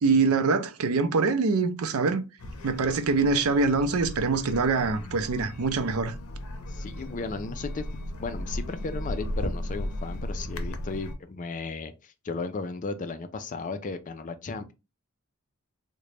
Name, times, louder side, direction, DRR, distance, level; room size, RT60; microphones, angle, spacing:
voice 1, 0.0-2.2 2.6-6.1, right 4 dB, 80° right, 0.5 m, -24 dB
sound 1, 2.4-11.2, left 1 dB, 80° left, 0.6 m, -36 dB
voice 2, 6.7-7.8 8.2-14.7, left 3 dB, 35° left, 0.4 m, -35 dB
3.8 x 2.2 x 3.2 m
head